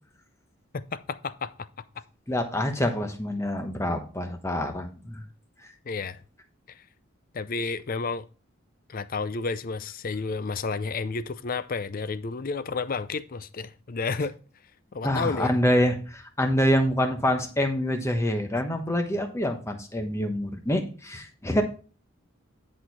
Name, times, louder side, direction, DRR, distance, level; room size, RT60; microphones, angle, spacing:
voice 1, 0.7-1.7 5.9-6.2 6.7-6.8 7.3-8.2 8.9-14.3 14.9-15.5, left 4 dB, 40° left, 0.5 m, -31 dB
voice 2, 2.3-5.2 15.0-21.6, equal, 15° left, 1.0 m, -26 dB
10.0 x 4.4 x 4.6 m
head